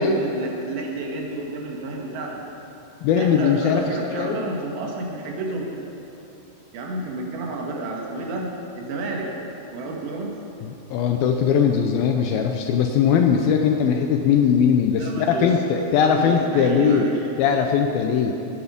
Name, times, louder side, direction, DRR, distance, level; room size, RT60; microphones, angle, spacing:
voice 1, 0.0-2.4 3.1-5.8 6.7-8.5 8.8-9.3 9.7-10.4 15.0-15.5 16.0-17.2, right 2 dB, 85° right, -1 dB, 3.9 m, -30 dB
voice 2, 3.0-4.5 10.6-17.1 17.4-18.3, left 7 dB, 80° left, 4 dB, 2.2 m, -20 dB
18.0 x 9.7 x 5.1 m, 3.0 s
omnidirectional pair, 4.8 m